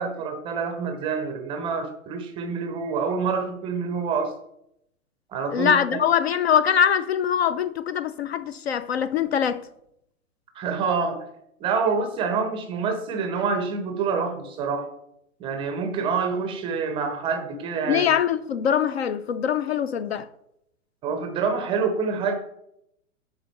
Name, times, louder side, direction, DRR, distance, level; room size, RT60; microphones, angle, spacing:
voice 1, 0.0-4.3 5.3-6.0 10.5-11.2 11.6-14.9 15.4-18.1 21.0-22.3, right 5 dB, 15° right, 0.5 m, -27 dB
voice 2, 5.5-9.6 17.9-20.3, left 8 dB, 50° left, 0.4 m, -23 dB
10.0 x 3.9 x 4.1 m
figure-of-eight pair, 115°, 43 cm